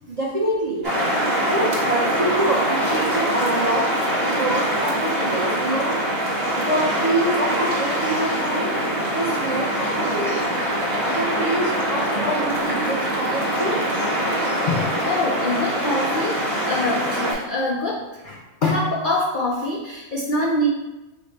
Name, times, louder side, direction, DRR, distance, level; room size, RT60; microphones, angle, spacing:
voice 1, 0.1-0.9 1.5-3.9 4.3-5.9 6.5-8.7 9.1-10.5 11.0-13.8, right 1 dB, 50° right, -5 dB, 0.5 m, -26 dB
sound 1, 0.8-17.3, equal, 30° right, 1.3 m, -23 dB
voice 2, 14.7-20.7, left 2 dB, 70° left, -1 dB, 0.4 m, -25 dB
5.2 x 2.1 x 3.9 m, 1.1 s
omnidirectional pair, 1.5 m